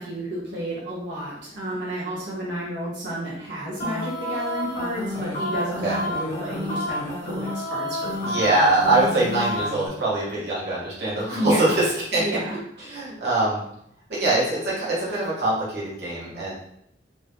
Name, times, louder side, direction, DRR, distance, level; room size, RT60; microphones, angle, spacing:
voice 1, 0.0-8.4 11.3-11.8 12.2-12.5, equal, 85° right, -6 dB, 1.3 m, -31 dB
sound 1, 3.8-9.9, left 1 dB, 45° left, 1.3 m, -30 dB
voice 2, 8.2-12.4 12.8-13.6 14.1-16.5, right 2 dB, 60° right, -7 dB, 1.4 m, -23 dB
3.8 x 2.7 x 3.3 m, 0.74 s
head